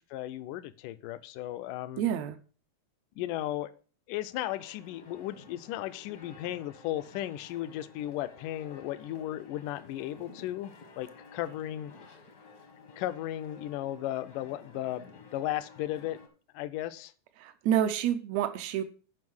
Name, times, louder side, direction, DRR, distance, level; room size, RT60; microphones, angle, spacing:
voice 1, 0.1-2.0 3.2-3.7 4.1-11.9 13.0-16.2 16.5-17.1, left 14 dB, 80° left, 2.1 m, -35 dB
voice 2, 2.0-2.4 17.4-18.8, right 10 dB, 85° right, 1.5 m, -28 dB
sound 1, 4.3-16.3, left 4 dB, 55° left, 1.0 m, -53 dB
9.5 x 5.4 x 6.1 m
omnidirectional pair, 4.0 m